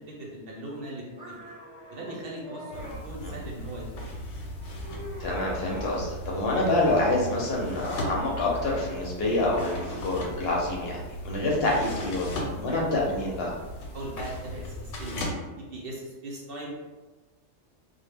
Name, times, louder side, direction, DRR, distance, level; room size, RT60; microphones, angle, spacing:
voice 1, 0.0-1.3 1.9-3.8 13.9-15.2 15.6-16.7, right 1 dB, 60° right, -3 dB, 0.7 m, -39 dB
sound 1, 1.1-3.0 3.6-4.1 4.5-6.1 6.4-7.1 7.7-10.0, equal, 30° right, 0.7 m, -45 dB
sound 2, 2.7-15.3, equal, 90° left, 0.9 m, -37 dB
voice 2, 5.2-13.5, left 2 dB, 65° left, -2 dB, 0.7 m, -27 dB
2.0 x 2.0 x 3.3 m, 1.2 s
omnidirectional pair, 1.2 m